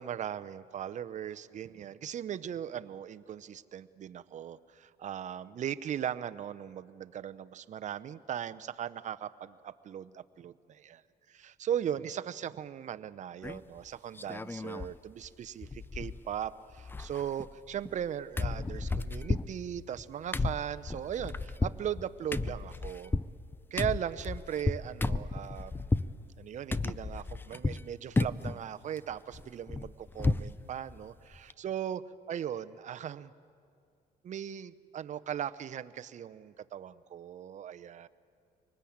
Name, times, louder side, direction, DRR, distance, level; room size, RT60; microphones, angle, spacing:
voice 1, 0.0-11.0 11.3-23.1 23.7-25.9 26.4-33.3 34.2-38.1, right 9 dB, 45° right, 13 dB, 0.7 m, -38 dB
sound 1, 13.4-13.8 14.2-15.0 15.2-15.3 15.6-16.5 16.7-18.1 18.4-26.1 26.7-27.9 28.2-28.6 29.0-30.6 30.9-31.0 31.3-31.5, left 3 dB, 10° left, 0.5 m, -33 dB
24.5 x 19.5 x 8.7 m, 2.4 s
cardioid pair, 110°, 17 cm